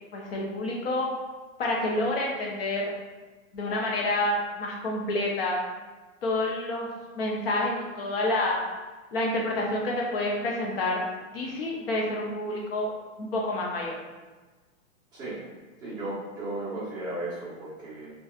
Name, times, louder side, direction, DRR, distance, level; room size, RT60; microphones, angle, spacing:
voice 1, 0.1-1.1 1.6-2.9 3.5-5.6 6.2-6.9 7.1-8.6 9.1-11.0 11.3-12.9 13.2-14.0, left 1 dB, 45° left, -2 dB, 0.8 m, -28 dB
voice 2, 15.8-18.1, right 2 dB, 10° right, -11 dB, 0.8 m, -35 dB
4.1 x 2.4 x 2.4 m, 1.3 s
hypercardioid pair, 165°, 40 cm